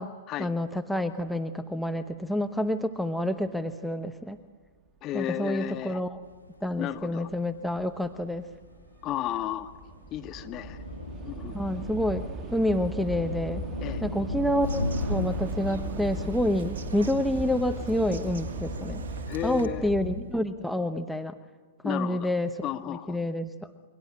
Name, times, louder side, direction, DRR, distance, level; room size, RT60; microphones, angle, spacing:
voice 1, 0.4-4.4 5.1-6.2 6.6-8.5 11.5-12.3 12.5-13.6 14.0-14.8 15.1-19.0 19.4-21.3 21.8-23.7, left 1 dB, ahead, 7 dB, 1.0 m, -28 dB
voice 2, 5.0-6.0 6.8-7.3 9.0-9.7 10.1-10.8 11.2-11.6 13.8-14.0 19.3-19.9 21.8-22.3 22.6-23.2, left 12 dB, 30° left, 6 dB, 1.7 m, -33 dB
Train / Subway metro underground, 6.1-6.2 7.1-7.3 7.6-20.1, right 2 dB, 25° right, 1.6 m, -39 dB
sound 1, 6.2-20.4, left 2 dB, 90° left, 1.4 m, -38 dB
Bird vocalization bird call bird song, 14.6-19.7, right 4 dB, 65° right, 1.8 m, -41 dB
28.5 x 23.5 x 8.8 m, 1.4 s
figure-of-eight pair, 105°, 0 cm